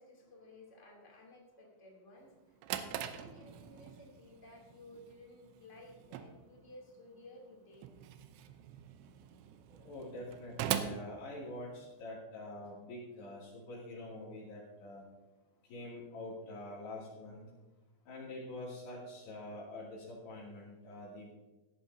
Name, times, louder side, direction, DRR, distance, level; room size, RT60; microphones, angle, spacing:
voice 1, 0.0-7.9, left 1 dB, 20° left, -2 dB, 2.0 m, -56 dB
Drawer open or close, 2.3-12.0, right 10 dB, 85° right, 3.0 m, -43 dB
voice 2, 9.7-15.0 15.7-17.4 18.1-21.3, left 1 dB, 65° left, -7 dB, 4.5 m, -46 dB
17.0 x 11.5 x 2.7 m, 1.1 s
omnidirectional pair, 5.3 m